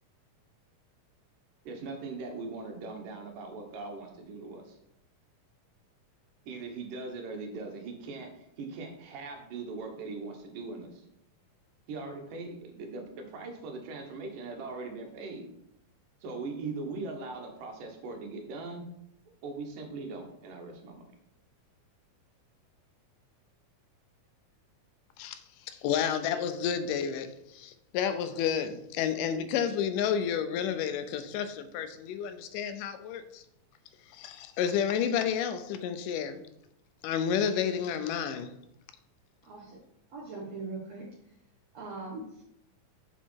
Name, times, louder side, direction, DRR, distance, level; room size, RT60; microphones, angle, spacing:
voice 1, 1.6-4.8 6.5-11.0 11.9-15.5 16.2-18.8 19.4-21.0, right 3 dB, 90° right, 3.0 m, -40 dB
voice 2, 25.7-33.4 34.1-36.4 37.0-38.5, left 8 dB, 85° left, 2.3 m, -30 dB
voice 3, 39.5-39.8 40.1-41.1 41.7-42.4, right 3 dB, 60° right, 2.3 m, -40 dB
7.3 x 6.6 x 4.6 m
omnidirectional pair, 3.7 m